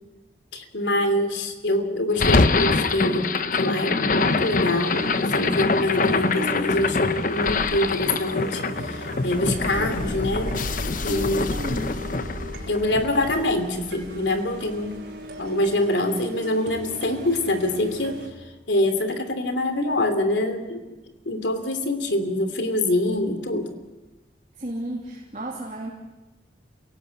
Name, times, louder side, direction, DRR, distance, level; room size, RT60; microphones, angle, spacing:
voice 1, 0.5-10.6 11.0-11.5 12.7-15.0 15.4-18.2 18.7-20.8 21.2-23.7, left 1 dB, 80° left, 8 dB, 2.9 m, -25 dB
sound 1, 2.1-14.4, left 3 dB, 50° left, 0.8 m, -24 dB
sound 2, 4.2-18.3, right 1 dB, 65° right, 4.4 m, -38 dB
voice 2, 11.0-12.0 24.6-25.9, right 1 dB, 40° right, -3 dB, 3.0 m, -33 dB
28.5 x 17.5 x 8.3 m, 1.1 s
head